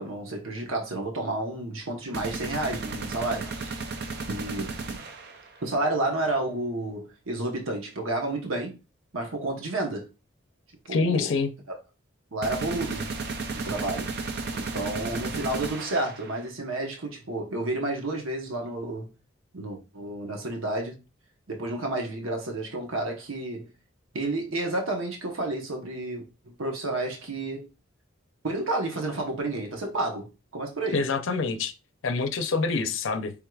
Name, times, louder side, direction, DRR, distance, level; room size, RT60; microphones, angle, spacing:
voice 1, 0.0-3.9 4.3-5.0 5.6-8.8 9.1-10.1 10.8-11.3 12.3-13.1 13.5-14.2 14.5-19.1 19.5-21.0 21.5-23.7 24.1-27.7 28.4-31.0, right 2 dB, 90° right, 1.0 m, -31 dB
sound 1, 2.1-5.5 12.4-16.5, right 3 dB, 50° right, 0.5 m, -34 dB
voice 2, 10.9-11.5 30.9-31.7 32.0-33.3, left 4 dB, 70° left, 0.5 m, -26 dB
4.6 x 3.6 x 2.3 m
head